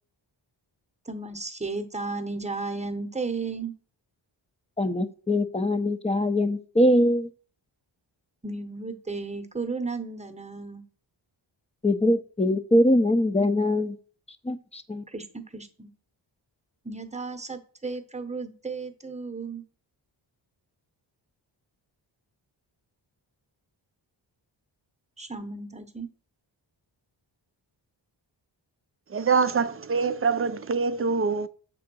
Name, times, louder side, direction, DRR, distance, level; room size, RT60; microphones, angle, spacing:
voice 1, 1.1-3.7 8.4-10.8 15.1-15.9 16.8-19.6 25.2-26.1, right 3 dB, 15° right, 0.9 m, -34 dB
voice 2, 4.8-7.3 11.8-14.0 14.4-15.0, left 1 dB, 15° left, 0.6 m, -23 dB
voice 3, 29.1-31.5, right 5 dB, 30° right, 0.5 m, -24 dB
6.9 x 3.8 x 6.1 m
wide cardioid pair, 95°, 46 cm